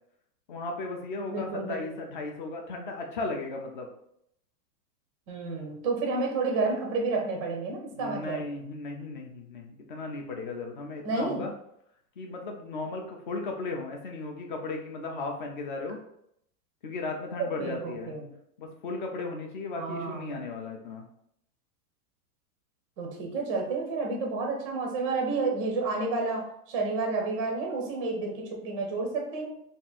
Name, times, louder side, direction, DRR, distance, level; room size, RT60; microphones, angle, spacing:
voice 1, 0.5-3.9 7.9-11.5 12.2-16.0 16.8-18.2 18.6-21.1, left 3 dB, 35° left, 2 dB, 0.4 m, -36 dB
voice 2, 1.3-1.8 5.3-8.4 11.0-11.4 17.4-18.3 19.8-20.4 23.0-29.5, right 3 dB, 25° right, 1 dB, 0.4 m, -30 dB
3.5 x 2.5 x 4.1 m, 0.74 s
supercardioid pair, 175°, 46 cm